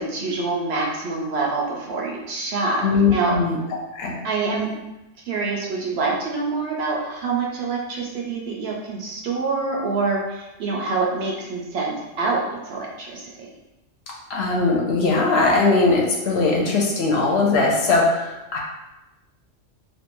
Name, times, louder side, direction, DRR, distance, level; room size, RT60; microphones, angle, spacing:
voice 1, 0.0-2.9 3.1-3.4 4.2-4.9 5.3-13.5, right 3 dB, 65° right, -2 dB, 0.7 m, -26 dB
voice 2, 2.8-3.6 3.9-4.1 14.3-18.6, left 3 dB, 65° left, -2 dB, 0.8 m, -20 dB
2.5 x 2.2 x 2.9 m, 0.98 s
omnidirectional pair, 1.2 m